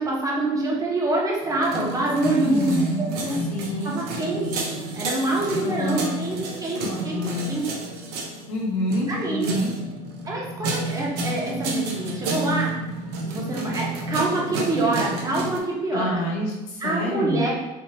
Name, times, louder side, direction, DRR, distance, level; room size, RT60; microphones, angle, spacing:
voice 1, 0.0-3.4 3.8-7.7 9.1-9.5 10.3-12.7 13.2-16.2 16.8-17.5, right 2 dB, 20° right, -3 dB, 1.1 m, -26 dB
sound 1, 1.4-15.6, right 1 dB, 65° right, 0.8 m, -31 dB
voice 2, 2.4-3.2 3.5-4.0 5.6-6.4 6.8-7.5 8.5-9.7 15.9-17.4, left 1 dB, 75° left, -2 dB, 0.8 m, -28 dB
3.5 x 2.8 x 2.8 m, 1.1 s
supercardioid pair, 95°, 18 cm